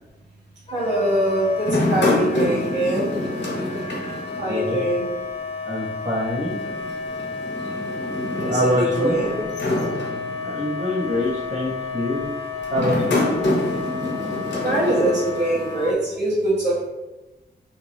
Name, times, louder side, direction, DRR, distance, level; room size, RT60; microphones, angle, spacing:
Wind instrument woodwind instrument, 0.7-16.0, left 5 dB, 35° left, 0.4 m, -32 dB
voice 1, 0.7-3.1 4.4-5.1 8.4-9.3 14.6-16.8, right 1 dB, 80° right, -8 dB, 1.1 m, -23 dB
sound 1, 1.6-5.0 5.3-5.4 6.5-10.7 11.4-11.7 12.6-15.9, left 1 dB, 80° left, 0.8 m, -26 dB
voice 2, 4.5-4.8 5.6-6.6 8.5-9.1 10.4-12.2 12.7-13.2, left 1 dB, 40° right, -6 dB, 1.1 m, -24 dB
2.8 x 2.4 x 3.0 m, 1.1 s
wide cardioid pair, 105°, 18 cm